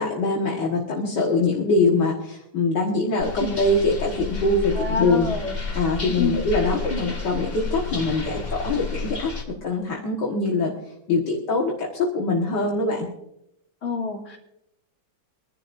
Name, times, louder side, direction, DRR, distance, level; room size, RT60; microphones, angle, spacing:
voice 1, 0.0-5.3 5.7-9.3 9.6-10.7 11.1-13.1, left 3 dB, 60° left, -2 dB, 2.2 m, -23 dB
sound 1, 3.2-9.4, left 3 dB, 25° left, 1.7 m, -31 dB
voice 2, 4.7-5.6 6.2-6.4 13.8-14.4, left 4 dB, 40° left, -2 dB, 2.9 m, -27 dB
24.0 x 11.5 x 2.6 m, 0.82 s
omnidirectional pair, 2.1 m